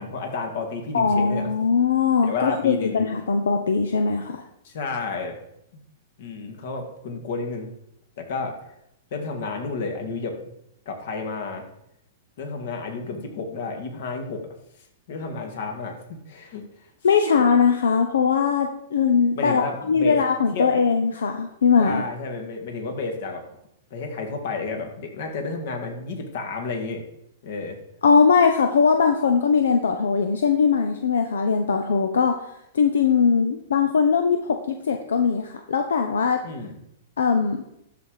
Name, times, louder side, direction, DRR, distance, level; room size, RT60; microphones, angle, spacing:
voice 1, 0.0-1.5 2.2-3.0 4.6-5.4 6.2-7.7 8.2-8.7 9.1-10.4 10.9-11.6 12.4-14.5 15.1-16.6 19.3-20.2 20.5-20.7 21.8-23.6 23.9-27.0 27.4-27.8 36.4-36.8, left 4 dB, 65° left, 4 dB, 2.2 m, -31 dB
voice 2, 0.9-4.4 17.0-22.0 28.0-32.4 32.7-36.4 37.2-37.6, left 5 dB, 90° left, 6 dB, 0.8 m, -20 dB
12.5 x 4.3 x 4.9 m, 0.78 s
hypercardioid pair, 135°, 0 cm